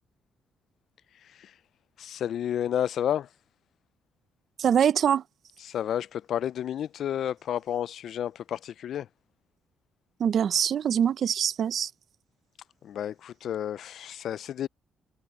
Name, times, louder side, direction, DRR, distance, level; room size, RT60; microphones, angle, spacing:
voice 1, 2.0-3.3 5.6-9.1 12.8-14.7, left 10 dB, 70° left, 0.4 m, -31 dB
voice 2, 4.6-5.2 10.2-11.9, right 8 dB, 60° right, 0.6 m, -24 dB
cardioid pair, 90°, 0 cm